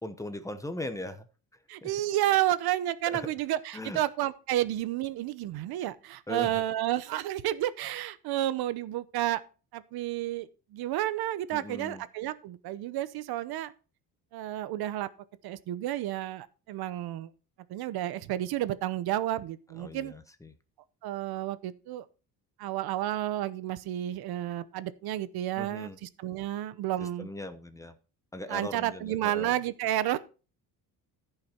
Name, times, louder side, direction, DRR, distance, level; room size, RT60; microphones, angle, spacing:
voice 1, 0.0-1.3 1.8-1.9 3.1-3.3 3.7-4.0 6.3-6.6 11.5-12.0 19.8-20.5 25.6-26.0 27.0-27.9 28.3-29.5, left 1 dB, 10° left, 0.8 m, -39 dB
voice 2, 1.7-9.4 9.7-13.7 14.3-15.1 15.4-17.3 17.7-20.1 21.0-22.0 22.6-27.3 28.5-30.2, right 13 dB, 75° right, 0.9 m, -31 dB
14.5 x 5.7 x 4.4 m
cardioid pair, 145°, 37 cm